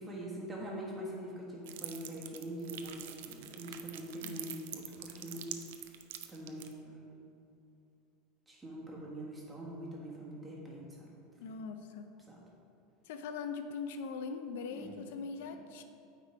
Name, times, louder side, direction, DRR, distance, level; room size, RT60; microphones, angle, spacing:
voice 1, 0.0-5.5 6.3-7.0 8.5-11.1 12.3-12.4 14.7-14.9, right 1 dB, 15° right, -4 dB, 1.5 m, -43 dB
sound 1, 1.6-6.7, right 11 dB, 80° right, 0.5 m, -45 dB
voice 2, 11.4-12.1 13.0-15.8, left 5 dB, 75° left, 8 dB, 0.4 m, -41 dB
8.8 x 3.7 x 4.6 m, 2.6 s
supercardioid pair, 140°, 0 cm